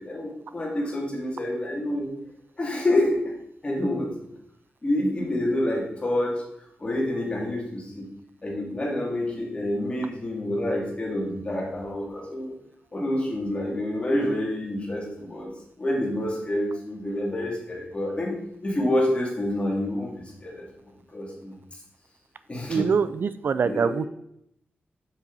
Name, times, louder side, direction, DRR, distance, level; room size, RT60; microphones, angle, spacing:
voice 1, 0.0-2.1 2.6-3.2 3.6-4.1 4.8-6.4 6.8-8.1 8.4-12.5 12.9-15.5 15.8-18.4 18.6-20.7 21.1-21.6 22.5-22.9 23.6-24.0, left 1 dB, 30° left, -3 dB, 2.7 m, -27 dB
voice 2, 22.7-24.1, right 6 dB, 60° right, 13 dB, 0.3 m, -24 dB
7.2 x 6.8 x 4.1 m, 0.76 s
wide cardioid pair, 115°, 4 cm